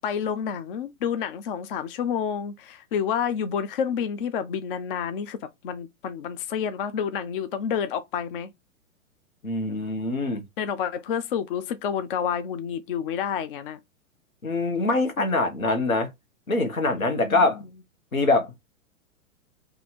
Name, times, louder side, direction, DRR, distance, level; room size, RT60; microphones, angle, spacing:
voice 1, 0.0-5.4 5.6-8.5 10.6-13.8 16.9-17.5, left 7 dB, 45° left, 0.4 m, -29 dB
voice 2, 9.4-10.4 14.4-16.1 16.5-17.6 18.1-18.5, left 2 dB, 80° left, 1.2 m, -24 dB
2.7 x 2.7 x 4.1 m
figure-of-eight pair, 110°, 41 cm